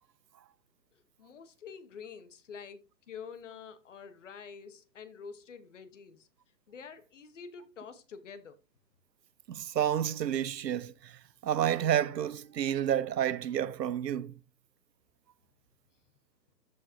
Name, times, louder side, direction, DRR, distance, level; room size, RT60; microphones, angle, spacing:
voice 1, 0.9-2.8 3.1-6.3 6.7-8.6, left 6 dB, 45° left, 1.3 m, -47 dB
voice 2, 9.5-14.3, right 10 dB, 75° right, 0.8 m, -30 dB
13.0 x 5.3 x 2.8 m
hypercardioid pair, 170°, 50 cm